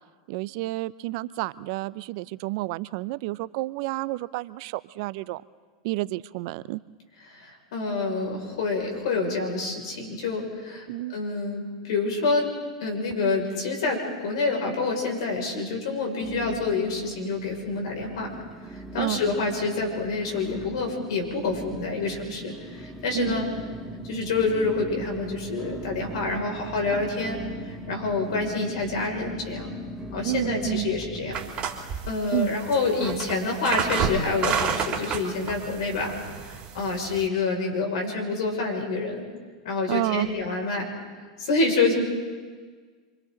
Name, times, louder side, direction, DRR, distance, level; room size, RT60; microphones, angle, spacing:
voice 1, 0.3-5.4 5.8-6.8 10.9-11.2 19.0-19.2 23.1-23.4 30.2-30.9 32.3-32.5 39.9-40.3, right 18 dB, 55° right, 18 dB, 0.5 m, -30 dB
voice 2, 7.2-12.5 12.8-18.3 18.9-23.5 24.0-29.7 30.1-31.4 31.7-39.2 39.6-40.9 41.4-42.0, left 3 dB, 70° left, 1 dB, 5.7 m, -27 dB
sound 1, 13.0-14.0 14.2-14.9 15.4-15.5 16.2-31.4, right 2 dB, 10° right, 1.9 m, -40 dB
sound 2, 31.3-37.3, right 6 dB, 35° right, 2.9 m, -30 dB
28.0 x 25.0 x 3.9 m, 1.5 s
hypercardioid pair, 100°, 3 cm